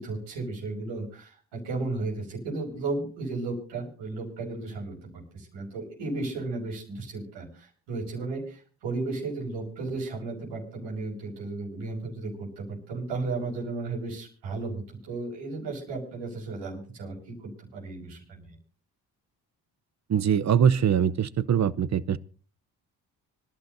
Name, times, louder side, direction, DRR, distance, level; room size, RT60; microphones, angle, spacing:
voice 1, 0.0-5.0 5.3-18.5, right 3 dB, 85° right, 6.1 m, -34 dB
voice 2, 20.1-22.2, right 8 dB, 40° right, 0.8 m, -23 dB
25.5 x 12.0 x 2.7 m
supercardioid pair, 60°, 41 cm